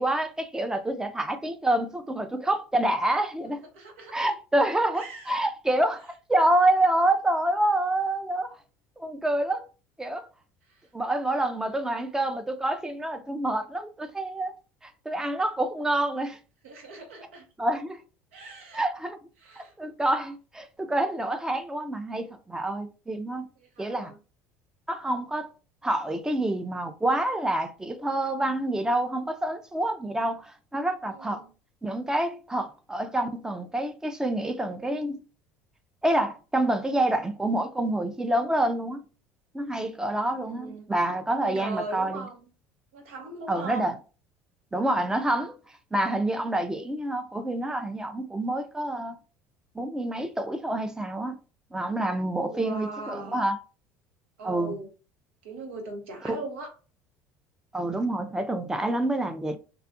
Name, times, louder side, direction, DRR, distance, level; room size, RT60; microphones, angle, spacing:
voice 1, 0.0-3.6 4.1-8.5 9.0-9.6 10.0-10.3 10.9-14.5 14.8-16.4 17.6-18.0 18.7-19.2 19.6-23.5 23.8-24.1 24.9-25.5 25.8-31.4 31.8-35.2 36.0-39.0 39.5-42.3 43.5-43.9 44.7-45.5 45.9-49.2 49.8-51.4 51.7-53.6 54.4-54.8 56.3-56.4 57.7-59.6, right 1 dB, 10° right, 0.4 m, -27 dB
voice 2, 3.4-4.3 4.9-5.4 10.7-10.9 16.6-17.5 18.3-18.8 19.4-19.7 23.6-24.2 31.1-31.5 40.3-40.9 41.4-42.5 42.9-43.9 52.5-53.4 54.4-54.9 55.4-56.7, right 2 dB, 85° right, 0.8 m, -40 dB
2.6 x 2.3 x 2.5 m
hypercardioid pair, 85°, 6 cm